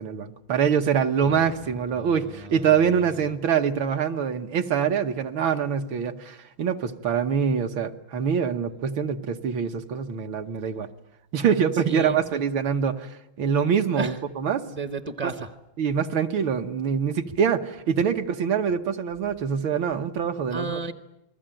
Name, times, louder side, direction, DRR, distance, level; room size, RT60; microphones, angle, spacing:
voice 1, 0.0-10.9 11.3-14.6 15.8-20.8, right 7 dB, 70° right, 5 dB, 2.0 m, -25 dB
voice 2, 1.2-1.6 2.0-2.1 2.4-2.5 11.9-12.2 14.0-14.1 14.7-15.5 20.5-20.9, right 3 dB, 30° right, 9 dB, 0.7 m, -32 dB
28.5 x 20.5 x 9.0 m, 0.85 s
omnidirectional pair, 2.3 m